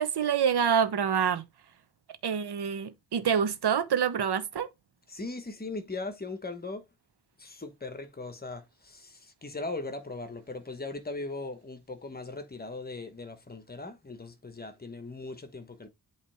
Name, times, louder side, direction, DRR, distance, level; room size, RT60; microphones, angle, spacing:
voice 1, 0.0-1.4 2.2-4.7, right 7 dB, 70° right, 1.0 m, -26 dB
voice 2, 5.1-6.8 7.4-15.9, left 3 dB, 25° left, 1.2 m, -39 dB
8.3 x 3.2 x 4.3 m
wide cardioid pair, 160°, 40 cm